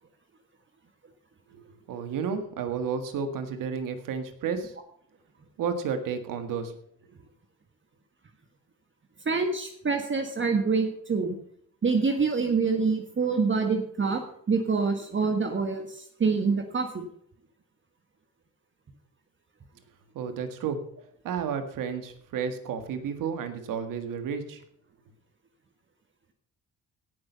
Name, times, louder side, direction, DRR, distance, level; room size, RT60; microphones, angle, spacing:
voice 1, 1.5-4.8 5.6-6.8 20.1-20.8 21.2-24.6, right 6 dB, 75° right, 8 dB, 1.7 m, -32 dB
voice 2, 9.2-11.4 11.8-14.2 14.5-17.1, right 4 dB, 35° right, 5 dB, 1.5 m, -26 dB
17.0 x 6.3 x 5.5 m, 0.66 s
supercardioid pair, 65°, 33 cm